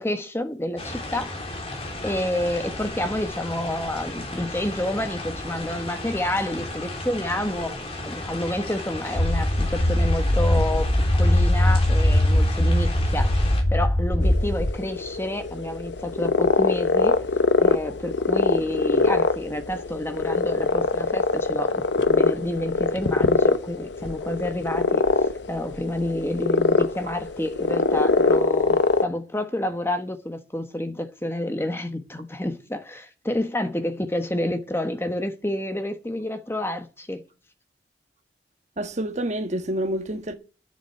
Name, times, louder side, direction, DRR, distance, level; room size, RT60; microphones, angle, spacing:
voice 1, 0.0-1.4 2.0-7.8 8.0-13.3 13.7-17.1 17.6-37.2, left 1 dB, 15° left, 1.3 m, -29 dB
sound 1, 0.8-13.6, left 2 dB, 35° left, 3.1 m, -34 dB
sound 2, 9.1-14.7, left 1 dB, 50° left, 1.7 m, -20 dB
sound 3, 14.2-29.0, left 3 dB, 80° left, 0.9 m, -23 dB
voice 2, 38.8-40.3, right 1 dB, 40° right, 1.5 m, -28 dB
10.5 x 7.3 x 8.2 m
head